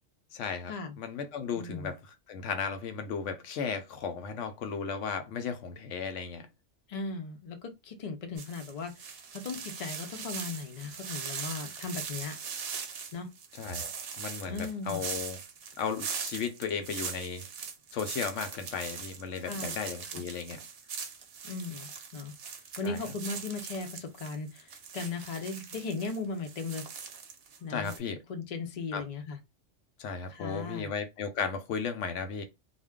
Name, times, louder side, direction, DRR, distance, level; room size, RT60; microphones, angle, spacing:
voice 1, 0.3-2.0 2.3-6.5 13.6-13.9 14.2-15.4 15.8-17.4 17.9-20.6 22.8-23.0 27.7-28.2 28.9-29.0 30.0-32.4, left 6 dB, 80° left, 0.9 m, -35 dB
voice 2, 1.6-1.9 6.9-12.4 13.1-13.3 14.4-15.0 19.4-19.8 20.1-20.2 21.4-22.3 22.8-26.9 27.6-27.9 28.3-29.4 30.3-30.9, left 4 dB, 50° left, 0.5 m, -37 dB
sound 1, 8.4-27.6 27.8-28.0, right 6 dB, 60° right, 0.8 m, -41 dB
2.4 x 2.1 x 3.4 m
omnidirectional pair, 1.3 m